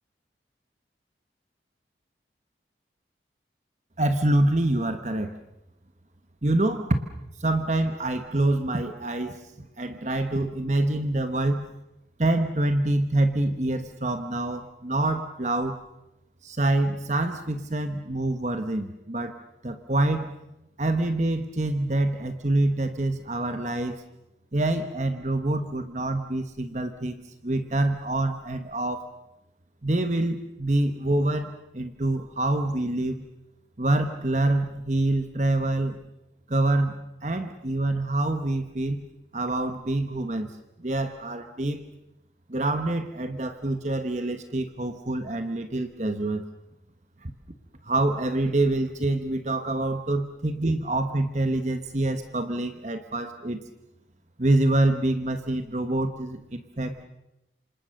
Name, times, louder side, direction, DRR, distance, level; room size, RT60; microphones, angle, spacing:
voice 1, 4.0-5.3 6.4-7.0 7.4-11.6 12.2-15.8 16.4-19.4 19.6-20.3 20.8-24.0 24.5-29.1 29.8-33.2 33.8-36.0 36.5-39.0 39.3-40.5 40.8-41.8 42.5-46.4 47.2-47.3 47.8-53.6 54.4-57.0, right 2 dB, 40° right, 8 dB, 1.2 m, -26 dB
27.5 x 26.5 x 6.6 m, 0.89 s
head